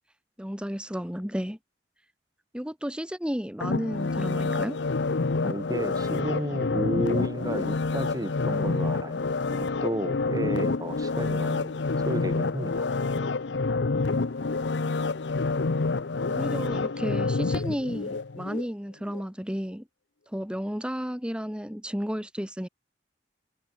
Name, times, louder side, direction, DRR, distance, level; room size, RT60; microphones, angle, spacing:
voice 1, 0.4-1.6 2.5-4.8 16.3-19.8 20.3-22.7, equal, 5° right, 2.0 m, -33 dB
sound 1, 3.6-18.7 19.1-19.2, left 3 dB, 80° left, 0.8 m, -28 dB
voice 2, 5.4-9.3 9.6-11.8 12.1-12.9, right 1 dB, 20° right, 2.4 m, -32 dB
head